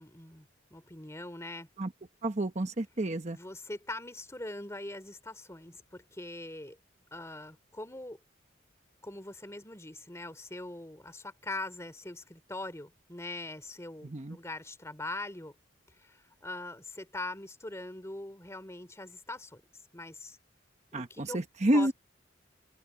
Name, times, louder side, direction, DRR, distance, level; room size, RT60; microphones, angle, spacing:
voice 1, 0.0-1.7 3.3-6.8 7.1-8.2 9.0-15.5 16.0-19.6 19.9-20.4 20.9-21.4 21.7-21.9, left 2 dB, 15° left, 3.1 m, -42 dB
voice 2, 2.2-3.4 14.0-14.4 20.9-21.9, right 1 dB, 35° right, 1.1 m, -29 dB
head